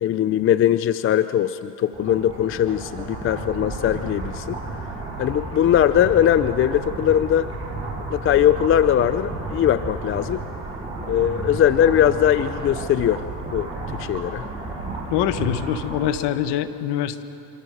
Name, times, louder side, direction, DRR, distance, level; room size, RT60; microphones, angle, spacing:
voice 1, 0.0-4.6 5.2-7.5 8.1-10.4 11.1-13.2 13.5-14.4, left 10 dB, 30° left, 13 dB, 0.5 m, -20 dB
sound 1, 1.9-16.1, right 2 dB, 10° right, 7.6 m, -32 dB
voice 2, 15.1-17.2, left 11 dB, 55° left, 11 dB, 1.6 m, -24 dB
27.0 x 26.0 x 6.6 m, 2.8 s
supercardioid pair, 105°, 47 cm